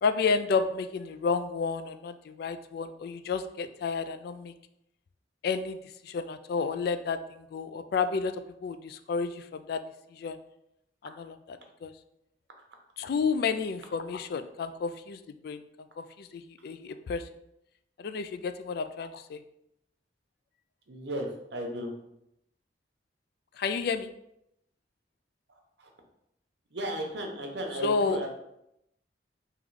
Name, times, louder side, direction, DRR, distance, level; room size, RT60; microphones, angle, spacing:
voice 1, 0.0-4.5 5.4-5.8 6.0-8.3 8.6-9.8 10.1-10.4 11.2-11.3 11.8-11.9 13.0-15.6 16.0-17.2 18.0-19.4 23.6-24.1 27.8-28.2, left 5 dB, 60° left, 10 dB, 0.3 m, -31 dB
voice 2, 20.9-21.9 25.8-25.9 26.7-28.3, equal, 80° right, 2 dB, 0.9 m, -35 dB
3.7 x 3.0 x 4.7 m, 0.81 s
head